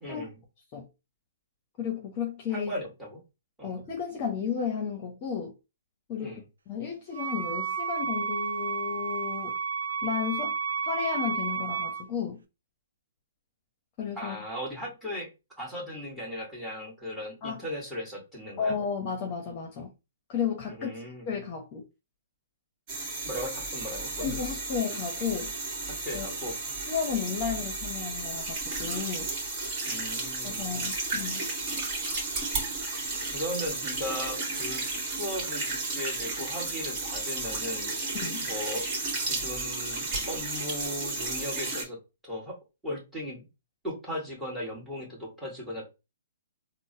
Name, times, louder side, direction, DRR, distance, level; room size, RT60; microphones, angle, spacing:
voice 1, 0.0-0.3 2.5-3.2 3.6-3.8 6.2-6.4 14.2-15.3 15.6-18.8 20.7-21.3 23.2-24.6 26.0-26.6 29.8-30.7 33.3-37.9 38.4-38.9 39.3-42.6 42.8-43.4 43.8-45.8, left 1 dB, 5° right, 1.5 m, -37 dB
voice 2, 1.8-2.7 3.6-5.5 6.1-9.6 10.0-10.5 10.8-12.4 14.0-14.4 17.4-17.6 18.6-19.9 20.3-20.9 21.3-21.8 24.2-25.5 26.1-26.3 26.9-29.3 30.4-31.4 38.1-38.4, left 7 dB, 35° left, 0.7 m, -33 dB
Wind instrument woodwind instrument, 7.1-12.1, right 6 dB, 80° right, 0.4 m, -31 dB
sound 1, 22.9-41.8, right 3 dB, 35° right, 1.3 m, -33 dB
3.7 x 2.0 x 2.6 m
hypercardioid pair, 130°, 0 cm